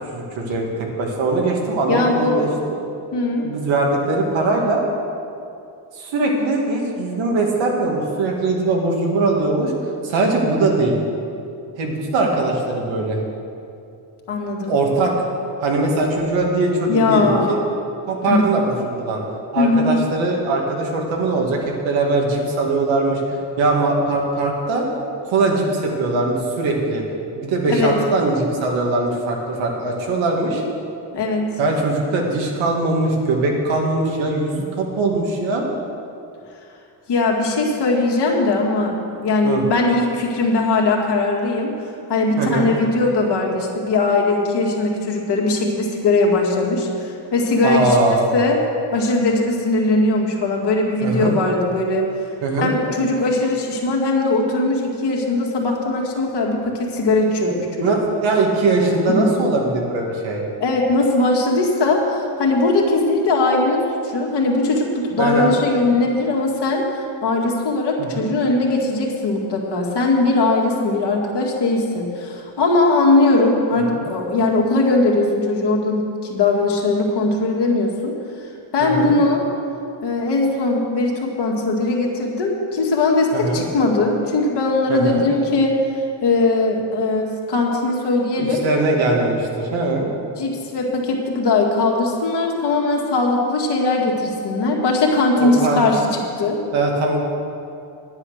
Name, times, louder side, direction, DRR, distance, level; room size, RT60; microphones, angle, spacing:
voice 1, 0.1-2.5 3.4-4.8 5.9-9.7 10.0-11.0 11.8-13.2 14.7-15.1 15.6-17.6 18.1-19.2 19.5-24.9 25.2-27.0 27.3-30.6 31.6-35.7 39.4-39.6 42.4-42.7 47.6-48.3 51.0-51.3 52.4-52.7 57.8-60.4 65.2-65.5 68.0-68.3 73.9-74.0 78.8-79.1 83.3-83.6 84.9-85.2 88.4-90.1 95.4-95.8 96.7-97.2, right 2 dB, 90° right, 0 dB, 2.1 m, -21 dB
voice 2, 1.9-2.5 3.1-3.5 14.3-14.7 16.9-17.5 18.3-18.4 19.6-20.0 27.7-27.9 31.1-31.6 37.1-41.7 42.1-48.0 48.3-48.6 48.9-52.1 52.5-57.9 59.1-59.3 60.6-66.8 67.2-78.1 78.7-79.5 80.0-85.7 86.2-88.6 90.4-96.6, left 2 dB, 60° left, -1 dB, 2.1 m, -19 dB
10.5 x 9.9 x 6.5 m, 2.6 s
cardioid pair, 125°, 45 cm